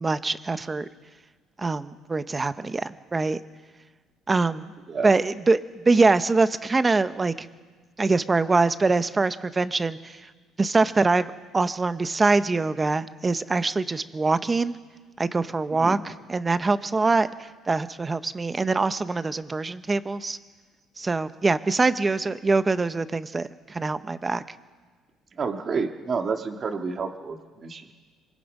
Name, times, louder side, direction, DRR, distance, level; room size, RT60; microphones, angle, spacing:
voice 1, 0.0-0.8 1.6-3.4 4.3-4.7 5.0-7.5 8.0-10.2 10.6-14.8 15.2-20.4 21.0-24.4, right 3 dB, 20° right, 12 dB, 0.8 m, -24 dB
voice 2, 25.4-27.9, right 5 dB, 35° right, 5 dB, 1.8 m, -29 dB
25.0 x 23.5 x 5.4 m, 1.4 s
cardioid pair, 140°, 0 cm